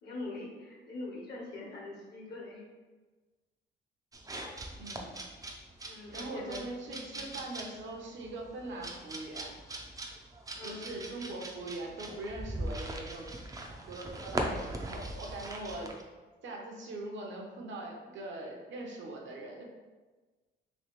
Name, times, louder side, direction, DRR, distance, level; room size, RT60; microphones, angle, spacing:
voice 1, 0.0-2.6 5.8-6.6 7.1-7.2 10.5-11.0, left 2 dB, 55° left, -4 dB, 1.2 m, -43 dB
sound 1, 4.1-16.0, right 1 dB, 20° right, 0.4 m, -41 dB
voice 2, 4.8-5.1 6.1-9.5 10.6-15.9 16.4-19.6, right 2 dB, 70° right, 0 dB, 0.8 m, -42 dB
3.1 x 2.8 x 3.0 m, 1.3 s
cardioid pair, 90°, 20 cm